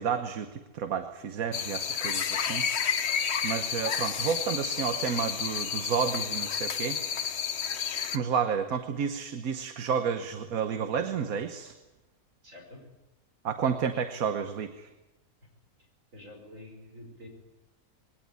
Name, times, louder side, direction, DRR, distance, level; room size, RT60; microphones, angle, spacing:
voice 1, 0.0-2.7 3.0-3.2 3.4-7.4 8.1-11.7 13.4-14.9, right 7 dB, 85° right, 7 dB, 1.5 m, -31 dB
sound 1, 1.5-8.2, left 7 dB, 55° left, 1.1 m, -31 dB
voice 2, 12.4-12.8 16.1-17.3, left 1 dB, 65° right, 2 dB, 5.6 m, -47 dB
20.5 x 17.5 x 9.5 m, 1.1 s
omnidirectional pair, 1.5 m